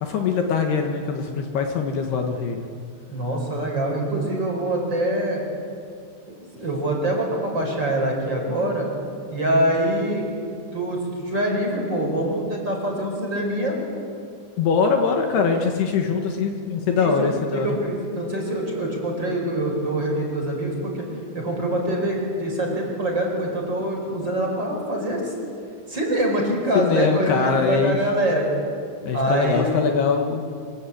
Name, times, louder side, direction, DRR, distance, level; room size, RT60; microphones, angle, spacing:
voice 1, 0.0-2.7 14.6-17.8 26.7-28.0 29.0-30.4, left 5 dB, 65° left, 3 dB, 3.3 m, -22 dB
voice 2, 3.1-5.5 6.4-8.9 9.3-10.3 10.7-13.8 16.9-21.1 21.3-25.3 25.9-28.5 29.1-29.7, right 1 dB, 25° right, 0 dB, 5.2 m, -24 dB
25.5 x 23.0 x 8.6 m, 2.3 s
omnidirectional pair, 5.3 m